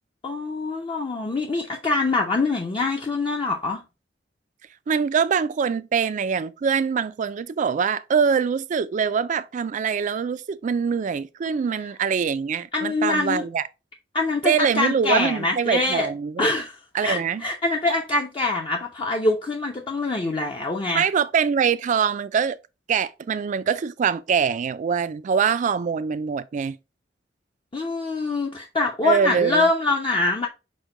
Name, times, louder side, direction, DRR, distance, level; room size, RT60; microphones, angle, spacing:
voice 1, 0.2-3.8 12.7-13.4 14.1-16.1 16.4-21.0 27.7-30.5, left 2 dB, 30° left, 0.5 m, -24 dB
voice 2, 4.9-13.6 14.4-16.5 16.9-17.4 20.9-22.6 22.9-26.8 29.0-29.7, right 6 dB, 45° right, 0.3 m, -23 dB
6.1 x 2.2 x 3.7 m
head